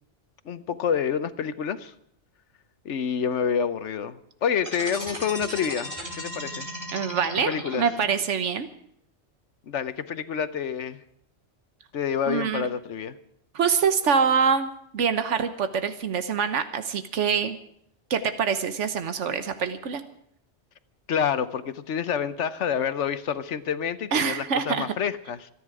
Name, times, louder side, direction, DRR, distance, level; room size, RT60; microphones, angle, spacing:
voice 1, 0.4-1.9 2.8-6.7 7.4-7.8 9.7-11.0 11.9-13.2 21.1-25.5, left 7 dB, 80° left, 13 dB, 1.2 m, -28 dB
sound 1, 4.6-8.2, equal, 25° right, 5.3 m, -36 dB
voice 2, 6.9-8.7 12.3-12.7 13.5-17.6 18.1-20.0 24.1-24.9, right 6 dB, 85° right, 9 dB, 1.3 m, -25 dB
26.5 x 10.0 x 4.8 m, 0.71 s
omnidirectional pair, 1.2 m